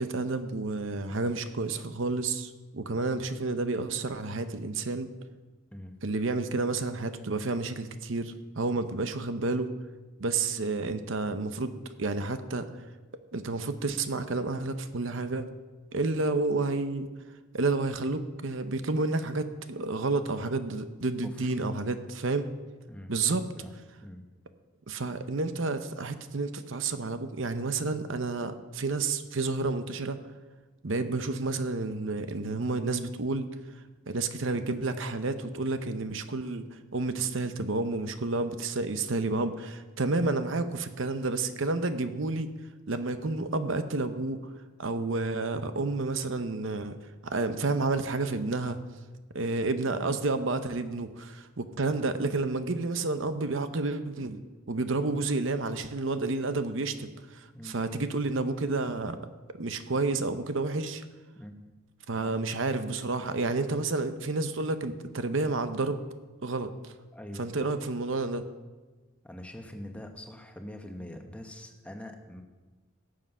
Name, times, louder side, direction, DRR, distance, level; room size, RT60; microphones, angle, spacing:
voice 1, 0.0-5.1 6.0-9.7 10.2-12.7 13.3-15.5 15.9-17.1 17.5-22.5 23.1-23.4 24.9-30.2 30.8-33.5 34.1-36.6 36.9-42.5 42.9-44.4 44.8-47.0 47.2-48.8 49.3-54.4 54.7-59.2 59.6-61.0 62.1-66.0 66.4-66.9 67.4-68.4, right 3 dB, 65° right, 9 dB, 0.8 m, -30 dB
voice 2, 22.9-23.7 24.0-24.3 57.5-57.8 61.3-61.6 62.2-62.3 67.1-67.7 69.2-72.4, left 1 dB, 5° left, 3 dB, 1.1 m, -44 dB
18.0 x 7.5 x 5.5 m, 1.3 s
head